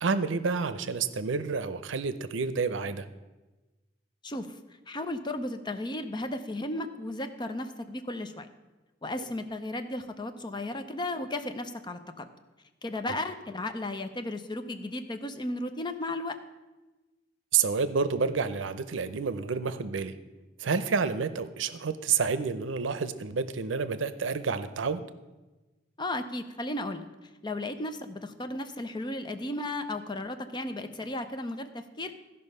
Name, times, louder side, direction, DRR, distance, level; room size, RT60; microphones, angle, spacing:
voice 1, 0.0-3.1 17.5-20.1 20.6-25.0, right 5 dB, 90° right, 12 dB, 0.6 m, -29 dB
voice 2, 4.9-8.5 9.0-12.3 12.8-16.4 26.0-27.1 27.4-32.1, left 1 dB, 25° left, 9 dB, 0.6 m, -34 dB
14.0 x 5.4 x 5.4 m, 1.1 s
head